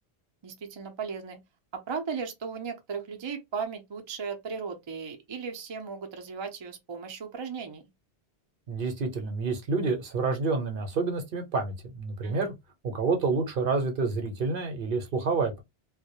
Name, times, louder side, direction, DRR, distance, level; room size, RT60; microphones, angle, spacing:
voice 1, 0.4-1.4 1.7-7.8 12.2-12.5, right 5 dB, 40° right, 0.4 m, -36 dB
voice 2, 8.7-12.5 12.8-15.6, right 4 dB, 60° right, 0.8 m, -28 dB
2.2 x 2.0 x 2.8 m
omnidirectional pair, 1.1 m